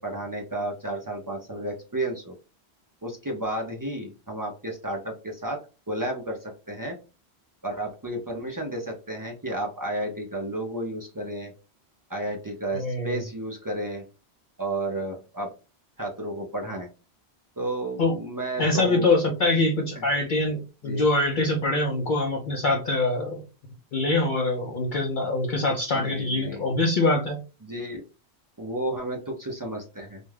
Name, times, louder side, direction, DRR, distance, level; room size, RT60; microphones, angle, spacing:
voice 1, 0.0-2.3 3.0-7.0 7.6-11.5 12.1-14.0 14.6-15.5 16.0-16.9 17.6-19.1 19.9-20.1 20.8-21.0 25.9-26.6 27.6-28.0 28.6-30.2, right 1 dB, 35° right, 0 dB, 0.3 m, -32 dB
voice 2, 12.7-13.2 18.0-18.2 18.6-23.4 23.9-27.4, left 2 dB, 55° left, 0 dB, 0.6 m, -24 dB
2.4 x 2.2 x 3.2 m, 0.32 s
omnidirectional pair, 1.1 m